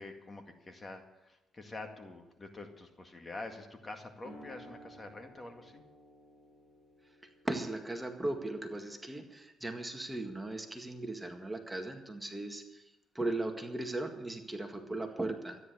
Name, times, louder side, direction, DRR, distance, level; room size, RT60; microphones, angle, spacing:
voice 1, 0.0-5.8 15.2-15.3, left 2 dB, 25° left, 5 dB, 2.0 m, -46 dB
sound 1, 4.2-11.4, equal, 50° left, 6.2 m, -57 dB
voice 2, 7.4-15.6, right 2 dB, 10° right, 4 dB, 1.8 m, -38 dB
13.5 x 10.0 x 8.0 m, 0.98 s
cardioid pair, 90°, 0 cm